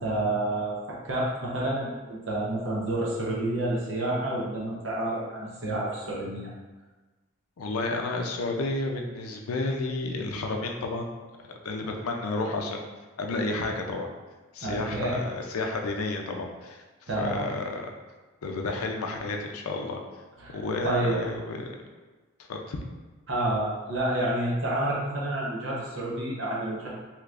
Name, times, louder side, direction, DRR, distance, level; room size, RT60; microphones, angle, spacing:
voice 1, 0.0-6.5 14.6-15.2 17.1-17.4 20.4-20.6 20.8-21.2 23.3-26.9, right 1 dB, 60° right, -5 dB, 0.8 m, -29 dB
voice 2, 7.6-11.1 11.6-12.9 13.2-14.1 14.5-16.8 17.2-17.9 18.4-20.0 20.5-21.7 22.5-22.8, left 2 dB, 90° left, 2 dB, 0.4 m, -31 dB
3.3 x 2.9 x 2.4 m, 1.3 s
head